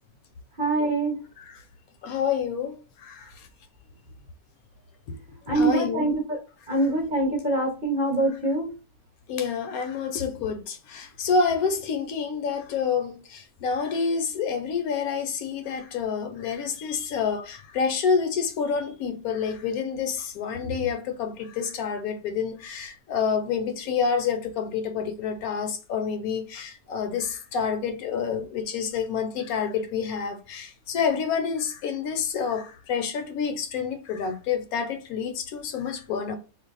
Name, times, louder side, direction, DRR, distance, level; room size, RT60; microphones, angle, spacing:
voice 1, 0.6-1.2 5.5-6.4 6.7-8.7, right 2 dB, 45° right, 0.6 m, -24 dB
voice 2, 2.0-3.5 5.1-5.2 5.5-6.1 9.3-36.4, left 6 dB, 75° left, 1.0 m, -28 dB
2.5 x 2.1 x 3.9 m
omnidirectional pair, 1.6 m